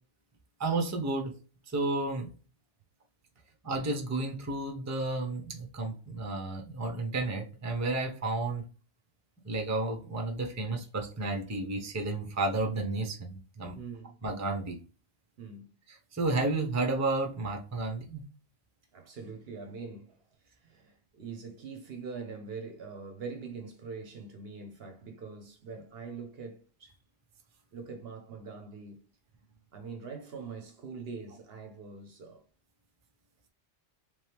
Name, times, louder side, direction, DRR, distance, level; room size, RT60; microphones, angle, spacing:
voice 1, 0.6-1.3 1.7-2.3 3.6-8.6 9.4-13.8 14.2-14.8 15.9-18.2, right 2 dB, 20° right, 0.6 m, -32 dB
voice 2, 13.8-14.2 15.4-15.7 18.9-27.0 27.7-29.0 29.7-32.4, right 5 dB, 60° right, 0.9 m, -43 dB
3.4 x 3.0 x 3.3 m
omnidirectional pair, 1.2 m